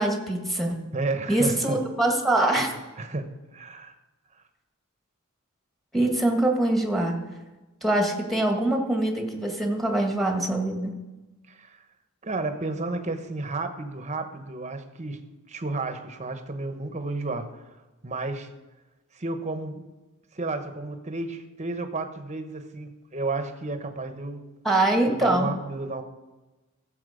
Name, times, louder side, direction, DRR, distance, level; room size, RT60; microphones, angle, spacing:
voice 1, 0.0-0.8 1.3-2.7 5.9-7.2 7.8-10.9 24.6-25.5, right 1 dB, ahead, 2 dB, 1.8 m, -24 dB
voice 2, 0.9-1.8 2.4-3.9 11.5-11.8 12.2-15.2 15.5-17.7 18.0-18.5 19.1-19.8 20.3-24.4 25.1-26.0, right 3 dB, 35° right, 8 dB, 1.1 m, -32 dB
15.0 x 7.6 x 5.1 m, 1.1 s
head